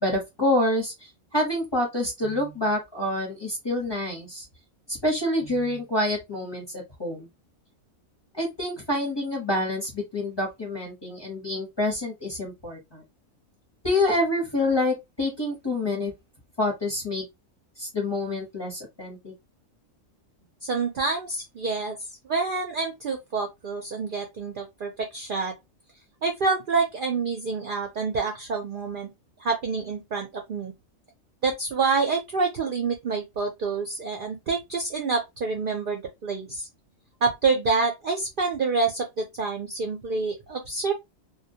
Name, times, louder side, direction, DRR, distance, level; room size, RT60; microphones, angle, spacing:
voice 1, 0.0-4.5 4.9-7.3 8.3-13.0 13.8-16.1 16.6-17.2 17.8-19.3, left 1 dB, 25° left, 0.7 m, -27 dB
voice 2, 20.6-22.0 22.2-25.5 26.2-29.1 29.4-30.7 31.4-36.7 37.2-40.9, right 4 dB, 60° right, 0.5 m, -27 dB
2.2 x 2.2 x 2.6 m
omnidirectional pair, 1.4 m